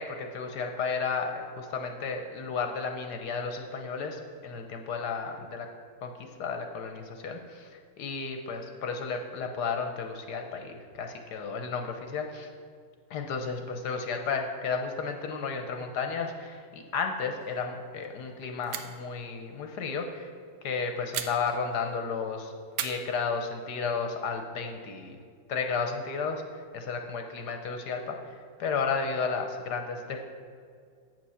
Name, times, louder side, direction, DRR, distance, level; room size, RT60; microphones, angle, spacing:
voice 1, 0.0-5.7 6.0-12.5 13.1-20.3 20.6-22.5 22.8-25.2 25.5-30.2, left 5 dB, 65° left, 5 dB, 1.2 m, -33 dB
sound 1, 17.4-17.8 18.0-18.1 18.6-19.1 21.1-22.0 22.7-23.9, right 10 dB, 85° right, 1.4 m, -39 dB
7.7 x 7.4 x 5.6 m, 2.1 s
omnidirectional pair, 2.1 m